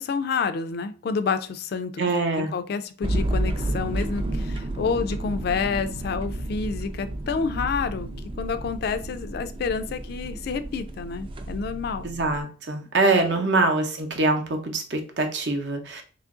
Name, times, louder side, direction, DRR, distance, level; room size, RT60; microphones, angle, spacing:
voice 1, 0.0-8.1 8.4-12.1 13.2-13.5, left 5 dB, 55° left, 0.3 m, -29 dB
voice 2, 2.0-2.5 12.0-16.0, right 3 dB, 65° right, 0.7 m, -24 dB
sound 1, 3.0-12.4, right 1 dB, 30° right, 0.3 m, -31 dB
3.0 x 2.5 x 3.6 m
head